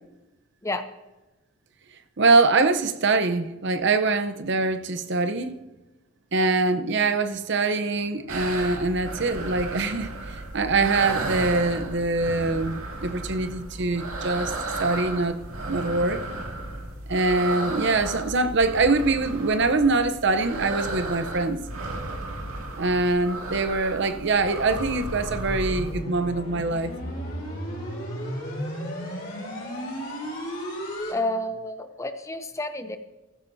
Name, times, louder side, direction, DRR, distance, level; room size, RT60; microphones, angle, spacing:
voice 1, 2.2-5.6 6.3-15.4 15.7-16.2 17.1-21.6 22.8-26.9, right 3 dB, 55° right, 0.7 m, -24 dB
sound 1, 8.3-26.0, right 2 dB, 85° right, 2.2 m, -34 dB
sound 2, 24.7-31.1, equal, 45° left, 4.7 m, -33 dB
voice 2, 31.1-33.0, left 1 dB, 15° left, 0.6 m, -30 dB
16.0 x 14.5 x 2.7 m
head